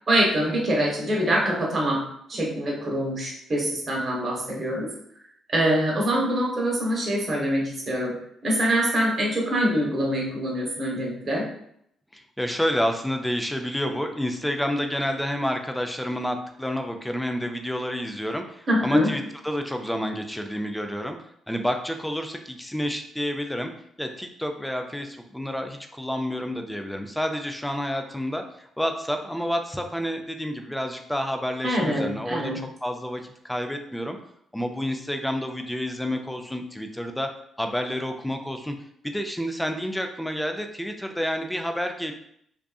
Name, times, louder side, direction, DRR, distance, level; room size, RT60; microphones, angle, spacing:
voice 1, 0.1-4.9 5.5-8.2 8.4-11.5 18.7-19.1 31.6-32.6, equal, 45° right, -2 dB, 1.0 m, -24 dB
voice 2, 12.1-21.2 21.5-23.7 24.0-32.5 32.8-34.2 34.5-37.3 37.6-38.8 39.0-42.1, equal, 5° left, 5 dB, 0.4 m, -29 dB
2.5 x 2.4 x 2.3 m, 0.70 s
supercardioid pair, 55°, 0 cm